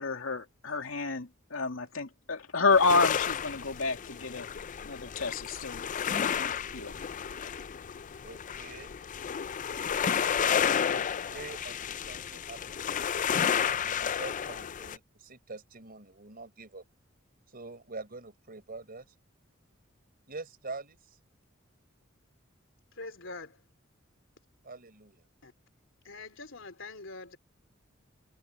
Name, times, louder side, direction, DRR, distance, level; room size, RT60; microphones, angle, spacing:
voice 1, 0.0-4.5 4.8-5.8 6.4-6.9, left 4 dB, 90° left, 2.7 m, -29 dB
sound 1, 2.7-15.0, left 8 dB, 40° left, 0.4 m, -31 dB
voice 2, 8.2-8.9 10.7-12.8 13.5-16.8 17.5-19.1 20.3-21.0 24.6-25.2, right 3 dB, 50° right, 5.0 m, -45 dB
voice 3, 22.9-23.6 25.4-25.5 26.0-27.4, left 3 dB, 70° left, 3.5 m, -44 dB
head